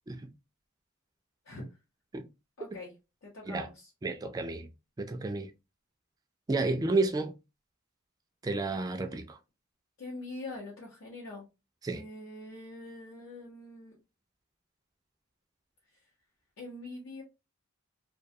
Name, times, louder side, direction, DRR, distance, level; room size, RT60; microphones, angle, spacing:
voice 1, 2.6-2.9 3.2-3.9 10.0-11.4 11.9-14.0 16.6-17.2, left 2 dB, 75° left, 0.8 m, -43 dB
voice 2, 4.0-4.7 5.0-5.5 6.5-7.3 8.4-9.4 11.8-12.0, right 3 dB, 20° right, 0.3 m, -31 dB
2.3 x 2.2 x 2.6 m
head